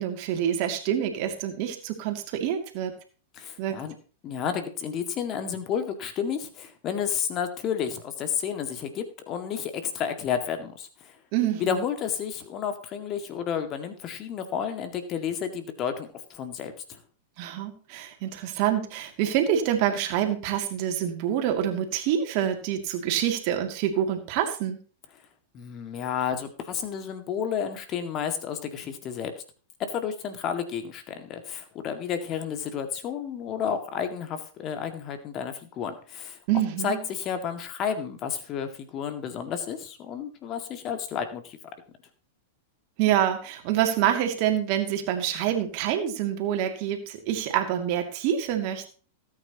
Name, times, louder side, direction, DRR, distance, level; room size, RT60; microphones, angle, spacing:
voice 1, 0.0-2.9 3.6-3.8 11.3-11.8 17.4-24.8 36.5-37.0 43.0-48.9, right 10 dB, 45° right, 4 dB, 2.5 m, -26 dB
voice 2, 3.4-4.0 4.2-11.1 11.6-17.0 25.5-29.3 29.9-36.4 36.8-41.6, left 7 dB, 35° left, 7 dB, 2.0 m, -31 dB
18.0 x 9.1 x 3.0 m, 0.38 s
figure-of-eight pair, 95°, 0 cm